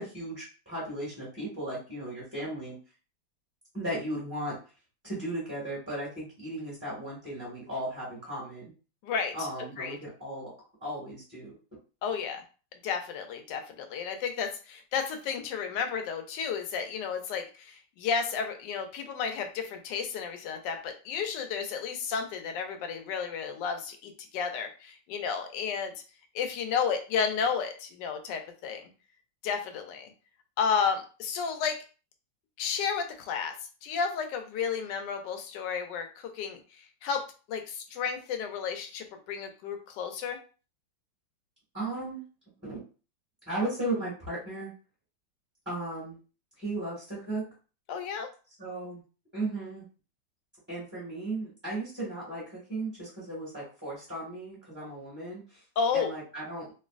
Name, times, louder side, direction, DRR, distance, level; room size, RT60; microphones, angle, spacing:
voice 1, 0.0-2.7 3.7-4.6 5.0-8.6 9.3-10.5 10.8-11.5 41.7-42.2 42.6-42.8 43.5-44.7 45.6-46.2 46.6-47.5 48.6-49.0 49.3-49.9 50.7-55.6 55.9-56.7, right 1 dB, 5° right, -8 dB, 1.3 m, -36 dB
voice 2, 9.0-9.5 9.8-10.0 12.0-12.4 12.8-25.9 26.3-28.8 29.4-30.1 30.6-31.8 32.6-33.5 33.8-36.6 37.0-37.2 37.5-40.4 47.9-48.3 55.8-56.1, left 6 dB, 75° left, 6 dB, 1.2 m, -32 dB
3.1 x 2.5 x 2.4 m, 0.35 s
omnidirectional pair, 2.0 m